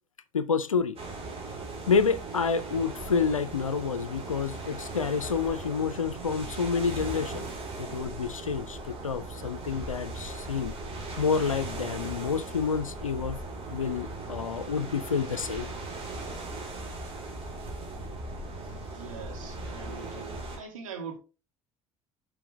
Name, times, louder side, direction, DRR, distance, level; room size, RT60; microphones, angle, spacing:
voice 1, 0.3-1.0 1.9-10.7 11.2-13.4 13.7-15.7, left 5 dB, 90° left, 0.4 m, -29 dB
sound 1, 1.0-20.6, right 2 dB, 35° right, 2.9 m, -38 dB
voice 2, 18.7-21.2, right 5 dB, 80° right, 1.7 m, -42 dB
7.5 x 5.1 x 3.0 m
figure-of-eight pair, 55°, 17 cm